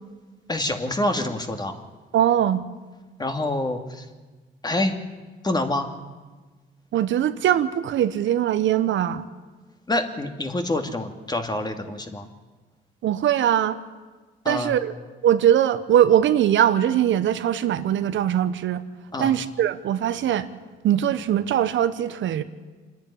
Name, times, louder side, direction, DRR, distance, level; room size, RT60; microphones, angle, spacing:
voice 1, 0.5-1.8 3.2-4.1 4.6-5.0 5.4-5.9 9.9-12.3 14.4-14.8 19.1-19.4, left 1 dB, 20° left, 5 dB, 2.5 m, -26 dB
voice 2, 2.1-2.6 6.9-9.3 13.0-13.8 14.5-14.9 15.2-18.8 19.2-20.5 20.8-22.4, right 10 dB, 70° right, 11 dB, 1.1 m, -21 dB
26.5 x 10.5 x 10.0 m, 1.3 s
cardioid pair, 90°, 20 cm